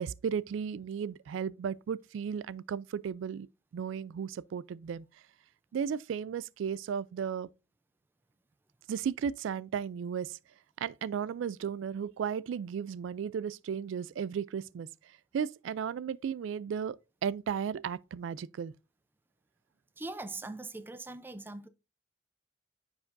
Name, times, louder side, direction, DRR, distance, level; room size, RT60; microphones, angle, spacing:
voice 1, 0.0-3.5 3.7-5.1 5.7-7.5 8.9-10.4 10.8-14.9 15.3-18.7, right 7 dB, 80° right, 0.3 m, -35 dB
voice 2, 20.0-21.7, right 2 dB, 10° right, 0.4 m, -41 dB
9.7 x 4.8 x 2.5 m
head